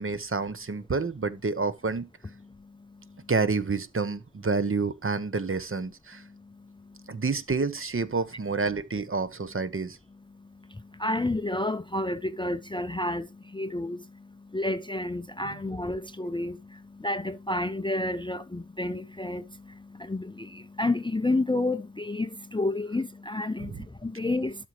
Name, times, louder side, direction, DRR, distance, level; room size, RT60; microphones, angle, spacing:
voice 1, 0.0-2.1 3.3-6.2 7.1-10.0 23.6-23.8, right 4 dB, 40° right, 0.9 m, -29 dB
voice 2, 11.0-13.3 13.5-14.0 14.5-16.6 17.0-19.4 20.0-23.7 24.0-24.6, left 2 dB, 15° left, 0.5 m, -29 dB
12.0 x 6.0 x 3.1 m
wide cardioid pair, 105°, 33 cm